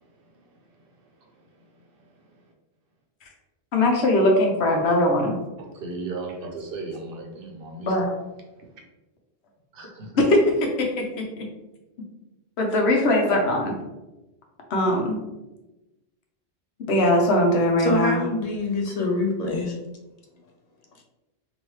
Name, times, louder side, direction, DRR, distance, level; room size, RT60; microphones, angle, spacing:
voice 1, 0.0-2.5 5.6-8.0 8.6-8.8 9.7-10.1, right 3 dB, 60° right, 2 dB, 0.8 m, -38 dB
voice 2, 3.7-5.4 7.8-8.1 10.1-11.5 12.6-13.7 14.7-15.2 16.9-18.2, left 1 dB, 80° left, 1 dB, 1.0 m, -21 dB
voice 3, 17.8-19.8, left 2 dB, 55° left, 1 dB, 0.4 m, -25 dB
3.0 x 2.7 x 3.1 m, 1.0 s
omnidirectional pair, 1.1 m